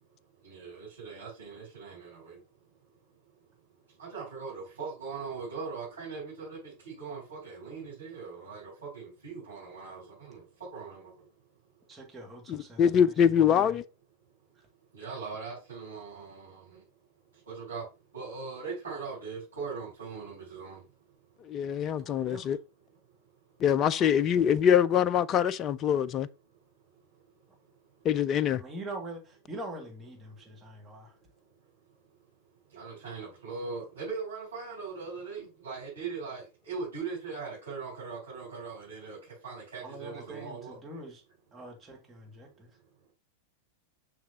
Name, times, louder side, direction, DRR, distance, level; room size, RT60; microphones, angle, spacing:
voice 1, 0.4-2.4 4.0-10.4 10.7-11.1 14.9-16.8 17.5-17.8 18.1-20.8 32.7-39.2 39.4-40.7, right 5 dB, 70° right, 4.3 m, -40 dB
voice 2, 11.9-13.8 22.0-22.6 23.8-24.1 28.5-31.1 39.8-41.2 41.5-42.7, right 1 dB, 15° right, 2.1 m, -44 dB
voice 3, 12.5-13.8 21.5-22.6 23.6-26.3 28.0-28.6, left 8 dB, 30° left, 0.3 m, -24 dB
6.6 x 6.1 x 2.8 m
figure-of-eight pair, 90°, 0 cm